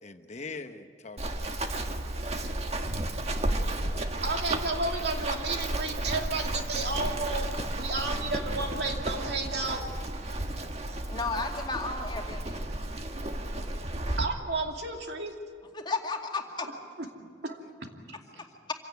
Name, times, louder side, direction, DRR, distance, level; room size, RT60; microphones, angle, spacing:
voice 1, 0.0-2.5 3.7-4.1 7.8-8.1 10.5-10.6 13.6-13.7 14.0-14.2 17.2-17.3 18.3-18.4, left 3 dB, 40° left, 7 dB, 1.1 m, -46 dB
Run, 1.2-14.3, right 1 dB, 40° right, 1.5 m, -33 dB
voice 2, 4.2-9.8 14.2-15.3 16.6-16.7 17.4-17.9, right 3 dB, 70° right, 2 dB, 2.7 m, -32 dB
voice 3, 11.1-12.7 15.7-16.7, left 3 dB, 25° left, 2 dB, 2.4 m, -33 dB
26.0 x 16.5 x 9.5 m, 2.1 s
head